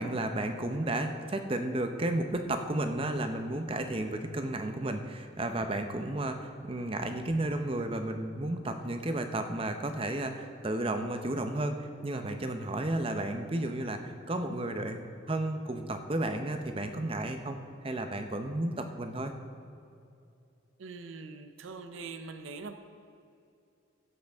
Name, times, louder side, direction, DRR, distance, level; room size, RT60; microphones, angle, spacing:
voice 1, 0.0-15.0 15.3-17.6 17.8-19.3, right 1 dB, 25° right, 6 dB, 0.7 m, -33 dB
voice 2, 20.8-22.7, right 4 dB, 80° right, 8 dB, 0.6 m, -43 dB
16.5 x 8.0 x 3.5 m, 2.6 s
head